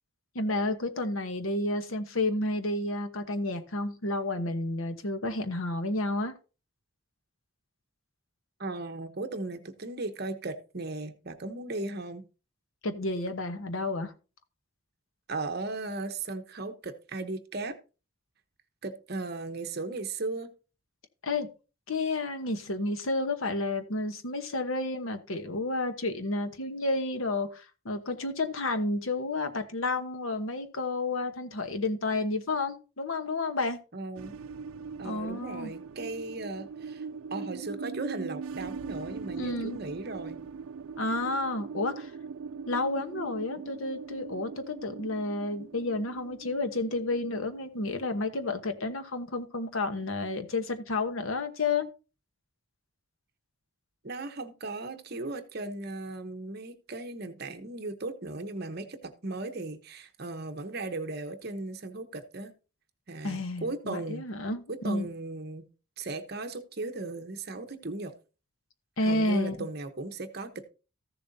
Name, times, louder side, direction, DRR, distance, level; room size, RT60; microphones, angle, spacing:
voice 1, 0.3-6.3 12.8-14.1 21.2-21.5 21.9-33.8 35.0-35.7 39.4-39.8 41.0-42.1 42.7-51.9 63.2-65.1 69.0-69.7, left 2 dB, 75° left, 1.1 m, -31 dB
voice 2, 8.6-12.2 15.3-17.8 18.8-20.5 33.9-34.4 35.0-37.0 37.3-40.4 54.0-62.5 63.1-64.3 64.7-65.7 66.0-68.1 69.0-70.7, right 2 dB, 50° right, 1.0 m, -37 dB
sound 1, 34.2-48.8, right 5 dB, 85° right, 0.4 m, -41 dB
14.5 x 7.0 x 2.7 m
head